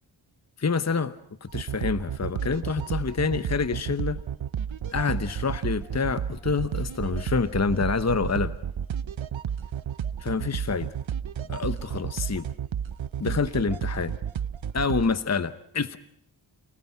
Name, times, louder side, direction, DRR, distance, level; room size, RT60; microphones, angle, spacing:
voice 1, 0.6-1.1 1.4-4.2 4.9-8.5 10.2-10.9 11.5-12.5 13.2-14.1 14.7-16.0, left 5 dB, 35° left, 13 dB, 1.0 m, -27 dB
sound 1, 1.5-15.1, right 8 dB, 70° right, 0.9 m, -31 dB
29.5 x 19.5 x 5.9 m, 0.72 s
wide cardioid pair, 70°, 48 cm